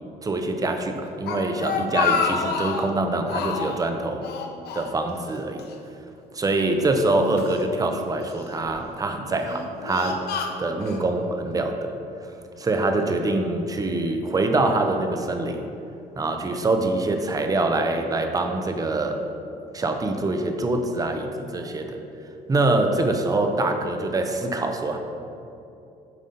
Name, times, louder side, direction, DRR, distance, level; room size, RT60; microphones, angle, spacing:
voice 1, 0.2-4.3 4.7-5.6 6.3-10.2 10.6-15.7 16.1-19.2 19.7-22.0 22.5-25.0, right 2 dB, 20° right, 5 dB, 0.7 m, -24 dB
Speech, 1.0-2.9 3.3-3.8 4.2-5.3 5.6-5.7 6.6-7.6 8.3-8.7 9.3-11.0, left 5 dB, 75° left, 0.7 m, -28 dB
7.4 x 4.1 x 5.3 m, 2.7 s
cardioid pair, 110°, 17 cm